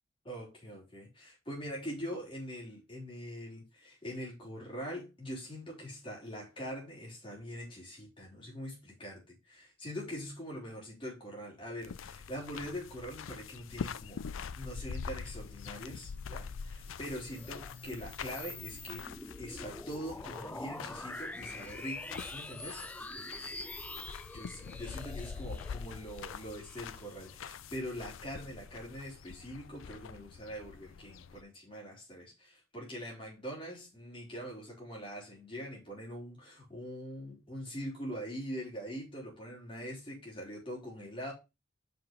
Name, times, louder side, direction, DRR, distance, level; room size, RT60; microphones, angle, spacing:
voice 1, 0.2-14.2 14.6-19.1 19.4-22.8 24.3-41.3, equal, 25° left, 3.8 m, -43 dB
sound 1, 11.8-31.4, left 6 dB, 75° left, 0.4 m, -45 dB
sound 2, 16.6-27.5, left 2 dB, 10° left, 0.4 m, -46 dB
5.7 x 5.6 x 5.3 m
head